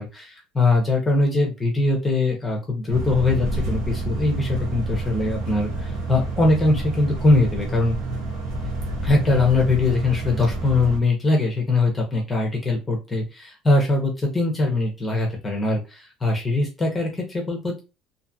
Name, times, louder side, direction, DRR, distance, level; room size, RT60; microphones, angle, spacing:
voice 1, 0.0-8.0 9.0-17.8, left 2 dB, 15° left, 0 dB, 0.6 m, -22 dB
sound 1, 2.9-11.0, right 2 dB, 75° right, 1.0 m, -29 dB
2.5 x 2.3 x 2.6 m, 0.29 s
cardioid pair, 170°, 0 cm